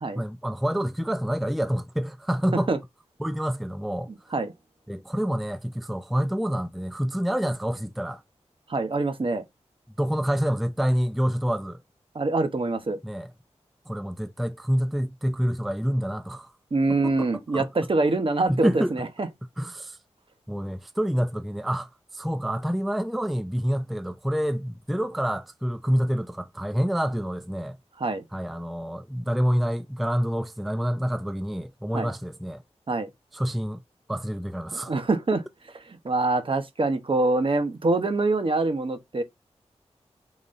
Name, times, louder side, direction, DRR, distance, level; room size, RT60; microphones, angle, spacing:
voice 1, 0.1-2.7 3.2-4.1 4.9-8.2 10.0-11.8 13.0-13.3 13.9-16.5 16.9-17.7 18.5-19.0 19.6-20.0 20.5-27.8 28.3-32.6 33.3-33.8 34.1-34.9, equal, ahead, 0.4 m, -27 dB
voice 2, 8.7-9.4 12.1-13.0 16.7-19.3 28.0-28.2 31.9-32.1 32.9-33.1 34.7-35.4 35.9-39.2, right 2 dB, 50° right, 0.8 m, -25 dB
4.0 x 2.9 x 2.6 m
cardioid pair, 50°, 12 cm